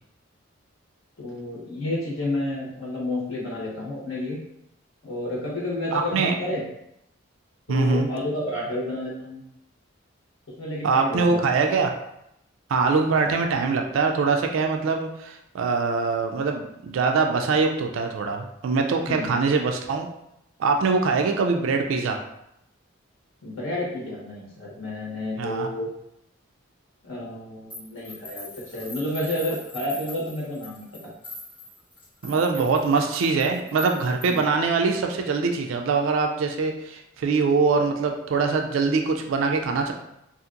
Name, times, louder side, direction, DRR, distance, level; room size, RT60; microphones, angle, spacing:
voice 1, 1.2-4.4 5.0-6.6 7.7-9.4 10.6-11.4 13.2-13.4 19.1-19.3 23.4-25.9 27.0-30.9 34.3-34.4, left 1 dB, 85° left, -5 dB, 1.0 m, -30 dB
voice 2, 5.9-6.4 7.7-8.1 10.8-11.9 12.7-20.1 20.6-22.2 25.4-25.7 32.2-39.9, right 4 dB, 75° right, 3 dB, 0.3 m, -23 dB
sound 1, 27.7-34.5, left 2 dB, 20° left, 1.2 m, -42 dB
2.8 x 2.5 x 2.4 m, 0.80 s
head